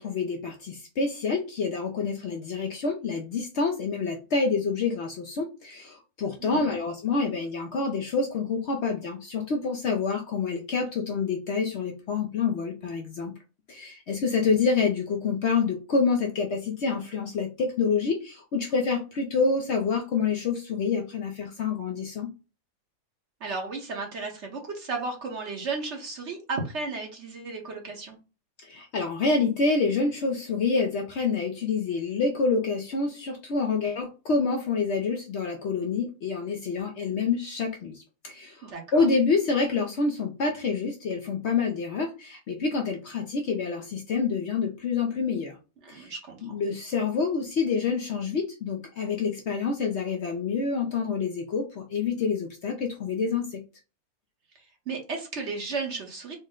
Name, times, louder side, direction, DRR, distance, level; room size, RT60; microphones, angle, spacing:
voice 1, 0.0-13.3 13.7-22.3 28.6-38.0 38.2-45.6 45.9-46.1 46.4-53.6, left 4 dB, 60° left, 1 dB, 0.8 m, -27 dB
voice 2, 6.4-6.8 23.4-28.2 38.6-39.1 45.8-46.6 54.9-56.3, right 4 dB, 55° right, 2 dB, 1.2 m, -34 dB
4.2 x 2.1 x 3.6 m, 0.32 s
omnidirectional pair, 1.6 m